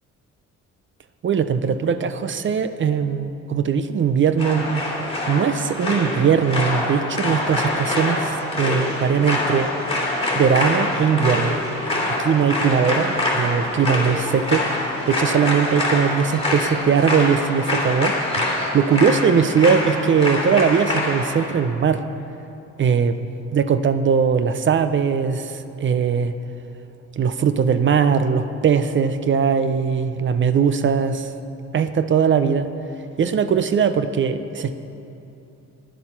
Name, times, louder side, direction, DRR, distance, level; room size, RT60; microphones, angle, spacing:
voice 1, 1.2-5.0 5.3-9.7 10.3-11.6 12.2-22.0 22.8-23.2 23.5-26.3 27.2-31.3 31.7-32.7 33.2-34.7, right 6 dB, 40° right, 11 dB, 0.5 m, -20 dB
sound 1, 4.4-21.5, left 1 dB, 20° left, 2.8 m, -25 dB
10.5 x 10.5 x 5.8 m, 2.8 s
cardioid pair, 90°, 30 cm